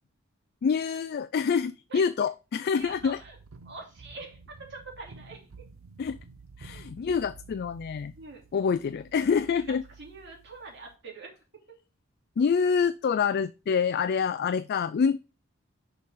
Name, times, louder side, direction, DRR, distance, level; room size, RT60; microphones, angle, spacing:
voice 1, 0.6-3.2 6.0-6.2 6.6-8.1 8.5-9.8 12.4-15.2, left 6 dB, 50° left, 13 dB, 0.3 m, -26 dB
voice 2, 1.9-2.3 2.7-3.4 3.6-5.5 8.1-8.4 9.4-9.6 10.0-11.4, right 3 dB, 60° right, -1 dB, 3.0 m, -45 dB
sound 1, 2.8-11.0, right 4 dB, 75° right, 0.6 m, -51 dB
6.6 x 5.7 x 3.6 m, 0.31 s
head